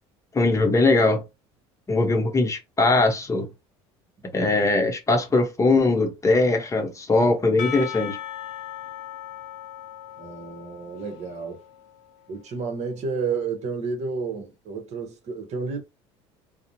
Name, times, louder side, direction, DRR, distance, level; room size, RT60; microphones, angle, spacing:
voice 1, 0.3-1.2 1.9-3.5 4.3-8.2, left 3 dB, 20° left, 0.7 m, -21 dB
Percussion / Church bell, 7.6-12.4, left 10 dB, 70° left, 0.5 m, -38 dB
voice 2, 10.2-11.6 12.3-15.8, right 4 dB, 55° right, 0.8 m, -31 dB
2.4 x 2.0 x 2.7 m
supercardioid pair, 85°, 14 cm